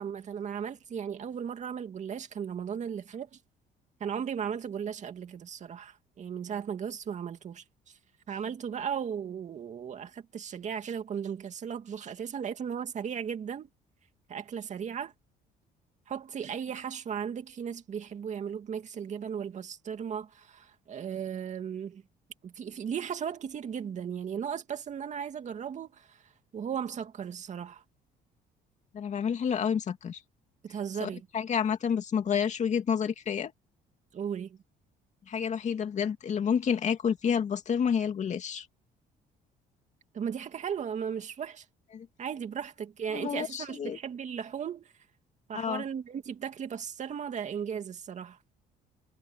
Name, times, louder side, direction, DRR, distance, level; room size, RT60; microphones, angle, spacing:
voice 1, 0.0-3.4 4.0-7.6 8.3-13.7 14.3-15.1 16.1-22.0 22.4-27.8 30.6-31.3 34.1-34.6 40.1-41.6 42.2-44.9 45.5-48.4, right 7 dB, 45° right, 2.3 m, -36 dB
voice 2, 28.9-30.2 31.0-33.5 35.3-38.7 41.9-42.1 43.1-44.0 45.5-45.8, left 7 dB, 45° left, 2.5 m, -29 dB
cardioid pair, 110°, 17 cm